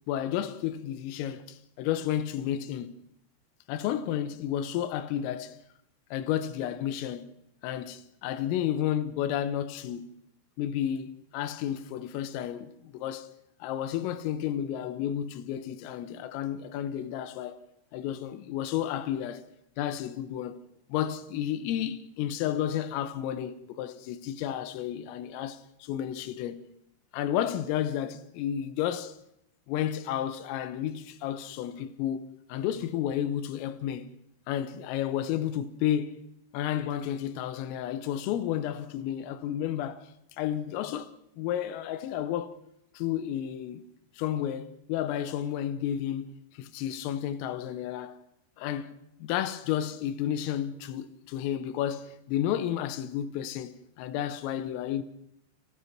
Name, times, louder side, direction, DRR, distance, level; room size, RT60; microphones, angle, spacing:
voice 1, 0.1-2.9 3.7-5.6 6.1-7.3 7.6-10.2 10.6-13.3 13.6-17.6 17.9-19.4 19.8-20.6 20.9-26.6 27.1-29.2 29.7-34.1 34.5-36.2 36.5-40.1 40.4-41.1 41.4-42.6 43.0-43.9 44.2-48.2 48.6-55.0, left 10 dB, 85° left, 3.7 m, -32 dB
27.5 x 16.5 x 6.0 m
omnidirectional pair, 5.8 m